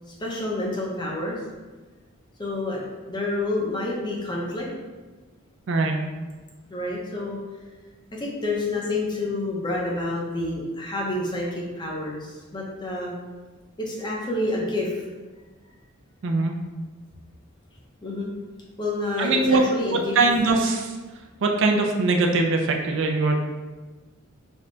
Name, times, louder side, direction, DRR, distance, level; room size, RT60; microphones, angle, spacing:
voice 1, 0.2-1.4 2.4-2.8 3.1-4.7 6.7-7.4 8.1-13.1 13.8-15.0 18.0-18.3 18.8-20.2, left 2 dB, 20° left, -3 dB, 0.7 m, -28 dB
voice 2, 5.7-6.0 16.2-16.5 19.2-19.6 20.2-20.9 21.4-23.4, right 3 dB, 65° right, 3 dB, 0.4 m, -21 dB
3.5 x 2.2 x 3.8 m, 1.3 s
head